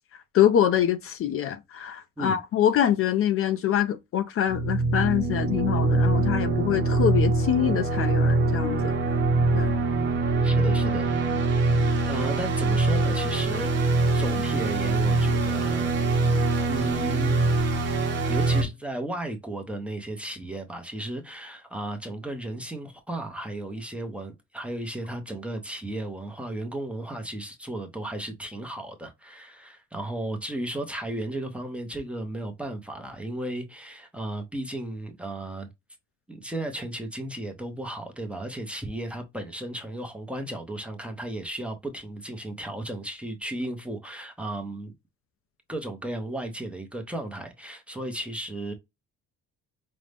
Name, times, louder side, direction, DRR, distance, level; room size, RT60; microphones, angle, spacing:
voice 1, 0.3-9.0 9.5-9.7, left 10 dB, 45° left, 0.4 m, -25 dB
sound 1, 4.5-18.6, right 2 dB, 35° right, 0.9 m, -23 dB
voice 2, 10.4-11.1 12.0-15.9 16.7-17.4 18.3-35.7 36.3-44.9 45.7-48.7, right 1 dB, 5° right, 0.6 m, -34 dB
5.2 x 2.1 x 3.2 m
cardioid pair, 170°, 31 cm